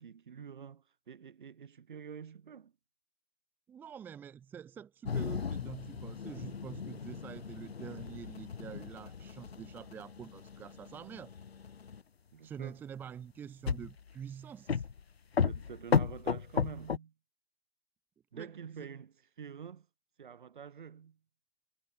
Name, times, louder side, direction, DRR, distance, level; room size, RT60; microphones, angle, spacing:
voice 1, 0.0-2.7 12.3-12.8 15.4-17.1 18.3-19.9 20.2-21.2, right 7 dB, 50° right, 6.5 m, -47 dB
voice 2, 3.7-11.3 12.4-14.8 18.3-18.5 18.8-18.9, right 8 dB, 5° right, 2.0 m, -46 dB
sound 1, 5.0-12.0 13.7-14.1 14.7-15.0 15.3-17.0, left 6 dB, 70° left, 2.2 m, -35 dB
hypercardioid pair, 170°, 32 cm